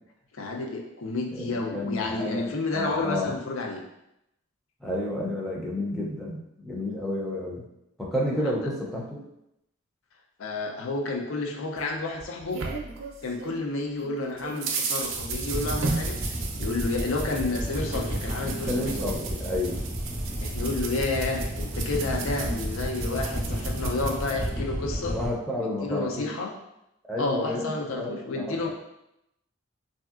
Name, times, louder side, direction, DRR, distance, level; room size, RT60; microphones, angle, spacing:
voice 1, 0.3-3.8 8.6-8.7 10.4-12.6 13.2-19.1 20.4-25.2 25.6-26.5 27.2-28.7, left 3 dB, 75° left, 2 dB, 0.5 m, -30 dB
voice 2, 1.3-3.4 4.8-7.6 8.0-9.3 18.7-19.8 25.1-26.3 27.1-27.7 28.0-28.7, left 1 dB, ahead, -5 dB, 0.4 m, -31 dB
sound 1, 11.8-13.6 14.0-24.5, right 4 dB, 65° right, 0.4 m, -35 dB
sound 2, 15.0-25.3, equal, 60° left, 1.0 m, -32 dB
3.1 x 2.7 x 2.3 m, 0.84 s
head